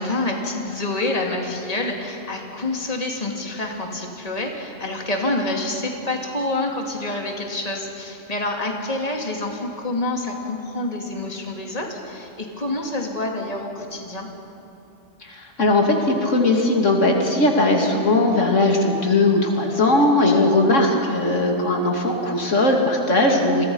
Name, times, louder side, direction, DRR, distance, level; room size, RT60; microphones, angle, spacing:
voice 1, 0.0-14.3 20.0-20.5, left 2 dB, 30° left, 1 dB, 2.5 m, -27 dB
voice 2, 15.2-23.6, left 2 dB, 85° left, 1 dB, 2.9 m, -19 dB
29.0 x 22.5 x 5.5 m, 2.8 s
omnidirectional pair, 1.3 m